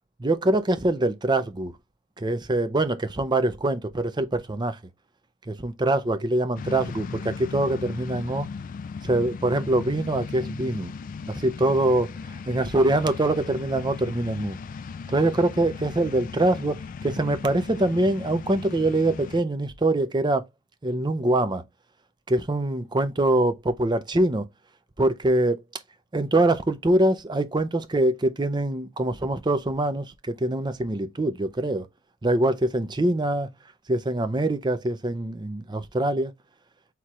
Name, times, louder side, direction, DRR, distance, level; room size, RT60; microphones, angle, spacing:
voice 1, 0.2-1.7 2.2-4.8 5.5-8.5 9.0-10.9 11.3-12.1 12.5-14.6 15.1-20.4 20.8-21.6 22.3-24.5 25.0-25.6 26.1-31.9 32.2-33.5 33.9-36.3, right 1 dB, 20° right, 0.6 m, -24 dB
sound 1, 6.6-19.4, left 5 dB, 40° left, 0.3 m, -37 dB
4.5 x 3.6 x 3.0 m
head